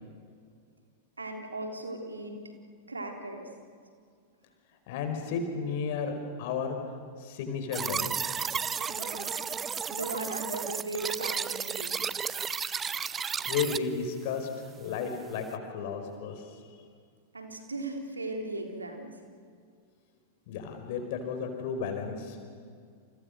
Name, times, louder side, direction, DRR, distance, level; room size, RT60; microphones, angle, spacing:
voice 1, 1.2-2.4 2.9-3.5 8.9-9.5 9.9-12.1 17.3-19.1, right 2 dB, 80° right, 3 dB, 3.5 m, -37 dB
voice 2, 4.9-6.8 7.2-8.3 12.6-12.7 13.2-14.5 14.8-16.4 20.5-22.4, left 6 dB, 50° left, 5 dB, 4.8 m, -33 dB
sound 1, 7.7-13.8, right 6 dB, 20° right, 0.8 m, -33 dB
29.5 x 29.0 x 6.7 m, 2.1 s
figure-of-eight pair, 90°, 0 cm